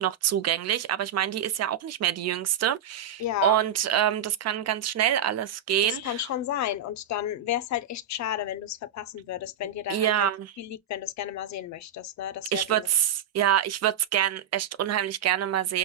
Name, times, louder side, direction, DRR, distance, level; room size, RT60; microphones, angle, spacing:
voice 1, 0.0-6.3 9.9-10.5 12.5-15.8, right 11 dB, 55° right, 0.5 m, -26 dB
voice 2, 3.2-3.6 5.8-10.3 10.6-12.9, left 12 dB, 65° left, 0.5 m, -32 dB
5.4 x 2.1 x 2.2 m
cardioid pair, 90°, 30 cm